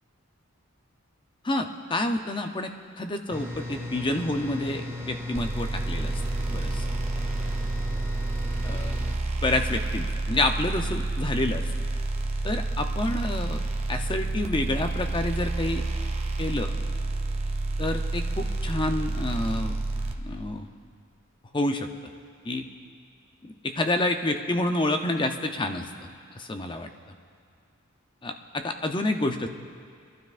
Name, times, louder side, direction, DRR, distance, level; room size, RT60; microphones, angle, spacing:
voice 1, 1.4-2.7 3.0-6.1 6.5-6.8 8.6-8.9 9.4-11.7 12.4-13.6 13.9-15.8 16.4-16.8 17.8-19.8 20.2-20.7 21.5-21.9 22.4-22.6 23.4-25.9 26.4-26.9 28.2-29.5, left 2 dB, 20° left, 6 dB, 0.6 m, -28 dB
sound 1, 3.3-9.2, left 2 dB, 10° right, 1.2 m, -36 dB
sound 2, 5.3-20.1, right 2 dB, 30° right, 0.8 m, -29 dB
23.5 x 12.0 x 2.5 m, 2.2 s
head